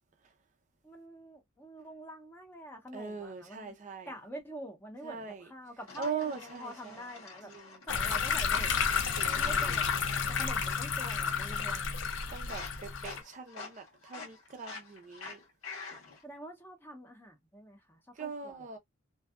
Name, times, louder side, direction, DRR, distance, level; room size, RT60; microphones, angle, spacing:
voice 1, 0.8-3.7 4.1-7.5 7.9-10.0 10.3-12.0 16.2-18.7, right 1 dB, 10° left, 0.6 m, -47 dB
voice 2, 2.9-4.1 5.0-5.5 6.0-7.0 7.4-7.8 9.2-9.9 12.3-15.4 18.2-18.8, right 5 dB, 35° right, 0.4 m, -41 dB
sound 1, 5.9-7.9 8.4-10.9 11.2-11.6 11.9-16.2, left 4 dB, 80° left, 1.2 m, -47 dB
sound 2, 7.9-13.2, left 6 dB, 60° left, 0.5 m, -31 dB
2.6 x 2.2 x 2.3 m
head